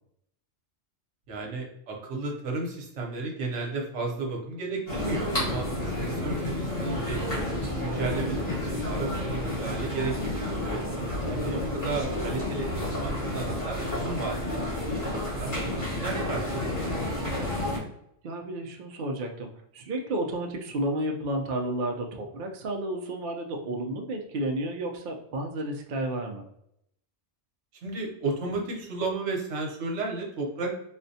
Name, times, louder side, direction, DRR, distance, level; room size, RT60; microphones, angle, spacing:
voice 1, 1.3-10.8 11.3-16.5 27.8-30.7, right 3 dB, 75° right, 0 dB, 1.1 m, -33 dB
sound 1, 4.9-17.8, left 1 dB, 35° left, 1.2 m, -30 dB
voice 2, 11.0-11.7 18.2-26.4, right 1 dB, 60° right, 2 dB, 0.6 m, -32 dB
4.0 x 2.2 x 2.6 m, 0.75 s
omnidirectional pair, 1.2 m